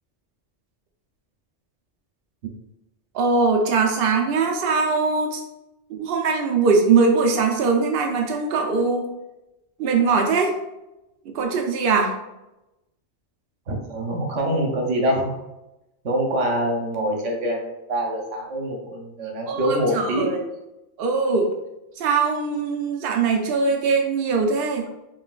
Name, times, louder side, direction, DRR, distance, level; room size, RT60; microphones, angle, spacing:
voice 1, 3.1-5.4 5.9-9.0 9.8-10.5 11.2-12.1 19.5-20.4 21.0-21.5 22.0-24.9, right 4 dB, 60° right, 2 dB, 0.7 m, -21 dB
voice 2, 13.7-15.3 16.0-20.4, right 1 dB, 80° right, 1 dB, 1.2 m, -25 dB
5.2 x 3.1 x 2.4 m, 0.94 s
omnidirectional pair, 1.2 m